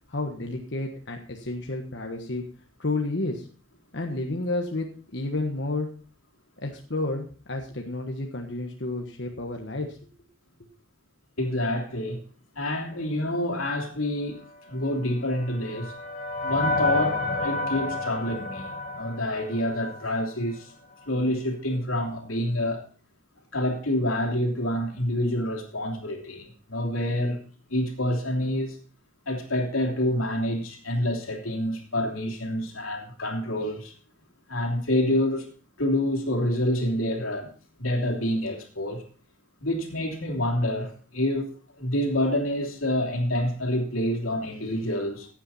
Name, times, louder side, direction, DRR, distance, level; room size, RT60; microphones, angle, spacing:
voice 1, 0.1-2.4 2.8-3.5 3.9-4.9 5.1-5.9 6.6-10.0, left 2 dB, 55° left, 1.4 m, -31 dB
voice 2, 11.4-12.2 12.5-14.4 14.7-15.9 16.4-20.7 21.0-22.8 23.5-27.4 27.7-28.8 29.3-33.9 34.5-35.5 35.8-37.5 37.8-39.0 39.6-41.5 41.8-45.3, left 1 dB, 90° left, 3.0 m, -27 dB
sound 1, 14.9-20.3, left 2 dB, 40° left, 1.6 m, -30 dB
15.5 x 9.0 x 4.2 m
head